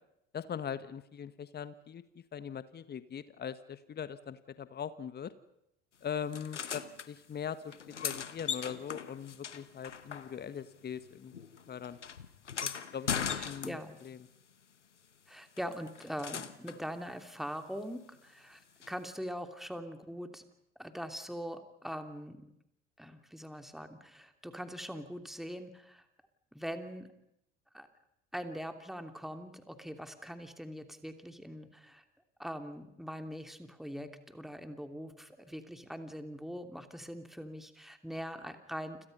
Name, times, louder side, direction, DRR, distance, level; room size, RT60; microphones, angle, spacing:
voice 1, 0.3-5.3 6.0-7.7 8.0-11.4 11.7-12.0 12.6-14.2, left 8 dB, 30° left, 14 dB, 1.4 m, -41 dB
sound 1, 6.3-7.1 7.7-10.7 10.9-14.1 15.6-16.8 18.8-18.9, left 7 dB, 85° left, 1.1 m, -39 dB
voice 2, 13.4-14.0 15.3-20.4 20.8-22.5 23.0-26.0 26.5-27.1 27.7-27.9 28.3-32.0 32.4-39.0, equal, ahead, 7 dB, 3.0 m, -42 dB
29.5 x 27.0 x 5.6 m, 0.81 s
figure-of-eight pair, 60°, 35 cm